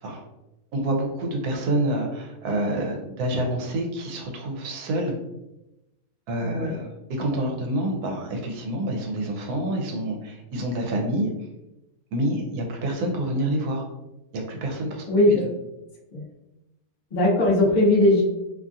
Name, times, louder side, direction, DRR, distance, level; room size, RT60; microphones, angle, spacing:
voice 1, 0.7-5.1 6.3-6.9 7.2-11.3 12.1-13.8 14.3-15.0, right 1 dB, 80° right, 1 dB, 1.2 m, -27 dB
voice 2, 6.4-6.7 15.1-15.5 16.1-16.2 17.1-18.2, left 1 dB, 50° left, -4 dB, 0.5 m, -19 dB
2.8 x 2.4 x 2.6 m, 0.95 s
omnidirectional pair, 1.7 m